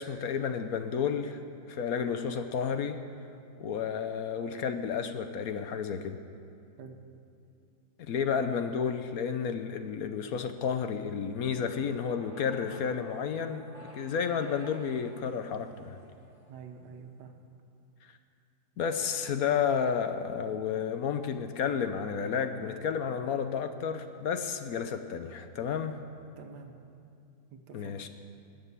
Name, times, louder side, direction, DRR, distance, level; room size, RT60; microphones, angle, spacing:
voice 1, 0.0-1.4 1.7-3.0 3.6-6.2 8.0-13.7 13.9-16.0 18.0-18.1 18.8-26.0 27.7-28.1, left 7 dB, 65° left, 9 dB, 1.1 m, -31 dB
sound 1, 11.4-16.7, equal, 20° right, 1.4 m, -54 dB
voice 2, 16.5-17.3 26.4-26.7 27.5-28.1, right 5 dB, 75° right, 4 dB, 1.7 m, -47 dB
20.0 x 6.8 x 8.2 m, 2.5 s
omnidirectional pair, 1.8 m